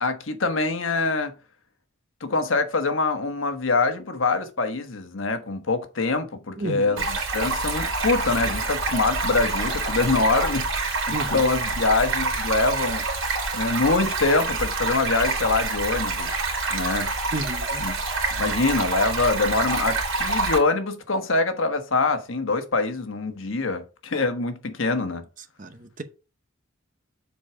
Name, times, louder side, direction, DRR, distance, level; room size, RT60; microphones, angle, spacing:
voice 1, 0.0-1.3 2.2-13.0 13.5-16.3 16.7-17.1 17.8-17.9 18.4-25.2, left 3 dB, 75° left, 1.2 m, -24 dB
voice 2, 6.6-7.1 11.1-11.5 17.3-17.8 25.6-26.0, right 2 dB, 40° right, 0.9 m, -32 dB
Stream, 7.0-20.6, right 3 dB, 85° right, 2.9 m, -27 dB
7.3 x 4.6 x 4.8 m
head